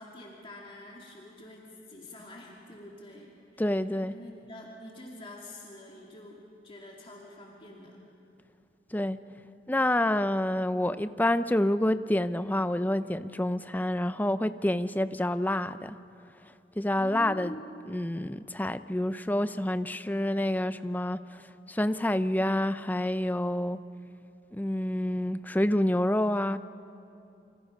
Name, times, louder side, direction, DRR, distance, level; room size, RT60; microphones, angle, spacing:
voice 1, 0.0-8.0 16.9-17.7, left 1 dB, 30° left, -2 dB, 2.6 m, -46 dB
voice 2, 3.6-4.1 8.9-9.2 9.7-15.9 16.8-17.5 17.9-21.2 21.7-23.8 24.5-26.6, left 1 dB, 10° left, 12 dB, 0.5 m, -28 dB
28.0 x 25.5 x 5.4 m, 2.7 s
head